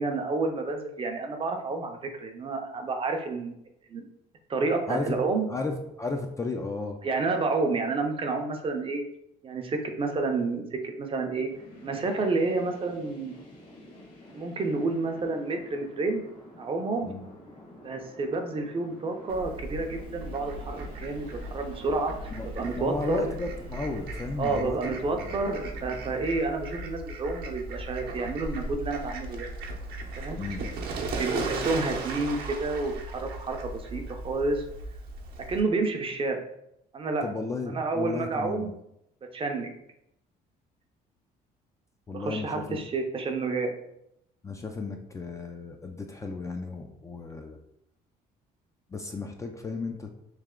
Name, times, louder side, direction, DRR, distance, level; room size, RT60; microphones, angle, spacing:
voice 1, 0.0-3.5 3.9-4.1 4.5-5.5 7.0-9.0 9.4-11.5 11.8-13.4 14.4-16.2 16.6-17.1 17.8-23.3 24.4-29.5 30.2-30.4 31.2-34.6 35.5-36.4 36.9-37.3 37.7-38.7 39.3-39.7 42.1-43.7, right 3 dB, 30° right, 4 dB, 0.6 m, -29 dB
voice 2, 5.5-7.0 17.0-17.3 22.3-22.5 22.8-24.8 25.2-25.3 30.4-30.6 37.2-38.7 42.1-42.8 44.4-47.6 48.9-50.1, left 3 dB, 20° left, 3 dB, 0.4 m, -34 dB
sound 1, 11.3-26.3, left 1 dB, 50° left, 1.2 m, -49 dB
Fowl, 19.3-35.6, right 2 dB, 65° right, 0.8 m, -37 dB
3.2 x 2.9 x 3.6 m, 0.79 s
cardioid pair, 110°, 17 cm